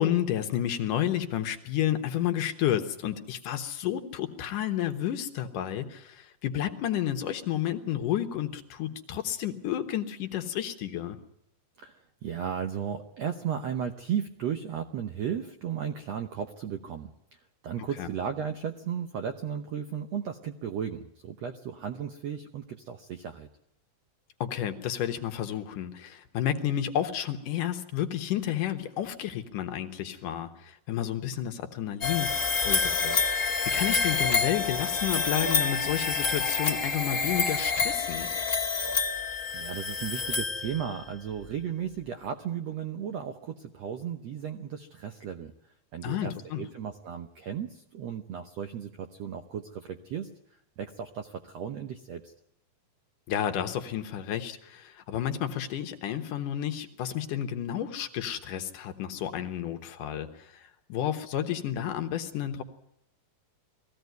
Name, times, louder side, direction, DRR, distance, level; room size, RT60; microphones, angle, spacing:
voice 1, 0.0-11.2 18.0-18.1 24.4-32.3 32.7-38.3 46.0-46.6 53.3-60.6 60.9-62.6, left 11 dB, 70° left, 7 dB, 2.6 m, -31 dB
voice 2, 11.8-17.1 17.6-23.5 39.5-45.5 45.9-50.3 50.8-52.3, right 8 dB, 75° right, 7 dB, 1.5 m, -35 dB
sound 1, 32.0-41.1, left 4 dB, 35° left, 1.3 m, -28 dB
20.5 x 15.5 x 9.3 m, 0.84 s
omnidirectional pair, 4.2 m